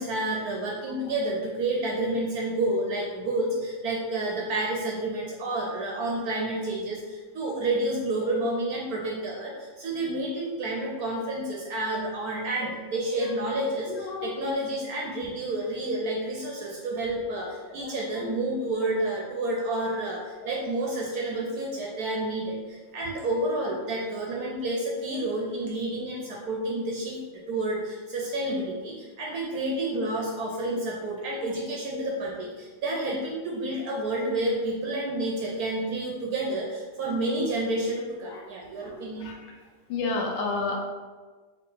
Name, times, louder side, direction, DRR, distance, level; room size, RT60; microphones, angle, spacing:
voice 1, 0.0-27.2 27.5-39.3, right 1 dB, 70° right, -2 dB, 0.9 m, -30 dB
voice 2, 13.9-14.5 17.8-18.3 31.9-32.0 38.3-38.4 38.8-39.4 39.9-40.8, left 3 dB, 80° left, 0 dB, 1.3 m, -32 dB
3.5 x 2.9 x 3.7 m, 1.4 s
omnidirectional pair, 2.0 m